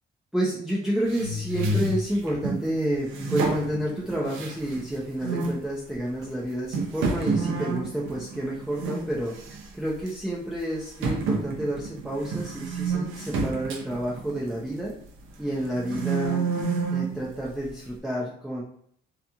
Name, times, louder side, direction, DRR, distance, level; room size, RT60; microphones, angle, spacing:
voice 1, 0.3-9.3 9.7-14.9 15.4-16.5 16.9-18.6, right 1 dB, 5° right, -5 dB, 0.6 m, -29 dB
sound 1, 1.1-2.6 3.1-4.9 5.2-5.6 6.2-6.3 6.7-9.1 9.3-9.7 10.1-10.2 11.0-15.0 15.5-17.2, right 3 dB, 80° right, 0.7 m, -29 dB
2.9 x 2.4 x 2.3 m, 0.65 s
cardioid pair, 90°, 20 cm